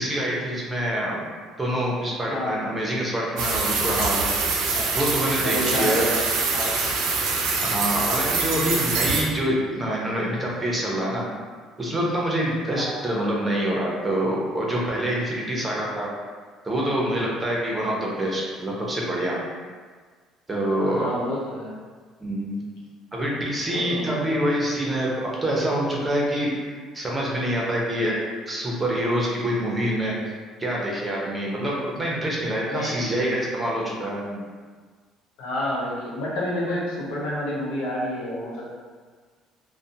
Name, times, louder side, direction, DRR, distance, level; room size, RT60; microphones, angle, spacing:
voice 1, 0.0-1.3 1.6-4.3 5.0-6.1 7.6-11.3 11.8-16.1 16.6-19.4 20.5-21.2 22.2-22.6 23.1-25.1 25.4-26.5 26.9-28.1 28.5-30.2 30.6-34.5, equal, 20° right, -4 dB, 0.6 m, -26 dB
sound 1, 3.4-9.2, right 4 dB, 80° right, 0.4 m, -24 dB
voice 2, 5.4-6.2 6.5-6.9 12.7-13.2 20.8-21.8 23.7-24.0 32.7-33.0 35.4-38.7, left 1 dB, 85° left, -4 dB, 0.6 m, -29 dB
2.5 x 2.1 x 2.7 m, 1.5 s
supercardioid pair, 95°, 0 cm